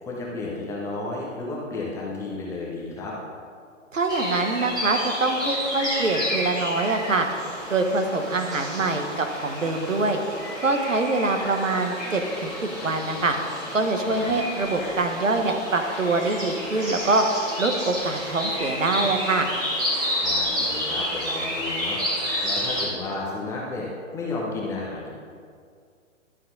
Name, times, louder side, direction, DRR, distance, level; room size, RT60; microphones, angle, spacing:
voice 1, 0.0-3.2 14.1-14.3 20.2-25.1, left 2 dB, 5° left, -4 dB, 0.7 m, -33 dB
voice 2, 3.9-7.3 7.7-10.2 10.6-13.3 13.7-17.2 17.6-19.5, right 3 dB, 75° right, 4 dB, 1.3 m, -24 dB
sound 1, 4.1-22.9, equal, 10° right, 1.9 m, -30 dB
11.5 x 7.2 x 3.9 m, 2.2 s
figure-of-eight pair, 125°, 39 cm